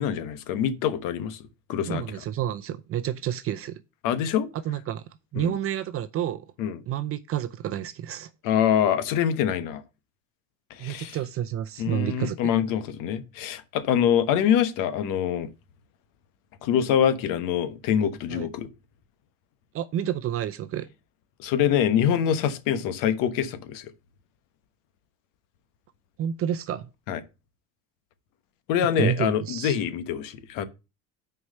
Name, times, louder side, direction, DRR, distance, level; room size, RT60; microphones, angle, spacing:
voice 1, 0.0-1.4 1.7-2.0 4.0-4.5 5.4-5.5 6.6-6.8 8.4-9.8 10.7-11.2 11.8-15.5 16.6-18.7 21.4-23.9 27.1-27.2 28.7-30.7, left 9 dB, 80° left, 1.1 m, -25 dB
voice 2, 1.9-3.8 4.6-5.0 5.3-6.5 6.9-8.3 10.8-12.4 18.3-18.5 19.7-20.9 26.2-26.9 29.0-29.8, right 10 dB, 45° right, 0.6 m, -29 dB
6.3 x 4.7 x 6.5 m
cardioid pair, 135°, 32 cm